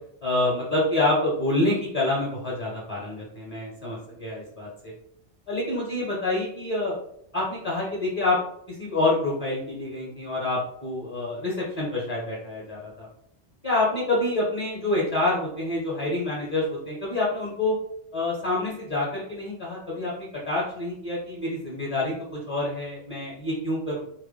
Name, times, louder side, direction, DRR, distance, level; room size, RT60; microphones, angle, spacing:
voice 1, 0.2-4.9 5.5-7.0 7.3-8.4 8.7-13.1 13.6-17.8 18.1-22.1 22.5-24.0, left 2 dB, 35° left, -5 dB, 0.7 m, -27 dB
2.2 x 2.0 x 3.1 m, 0.71 s
omnidirectional pair, 1.1 m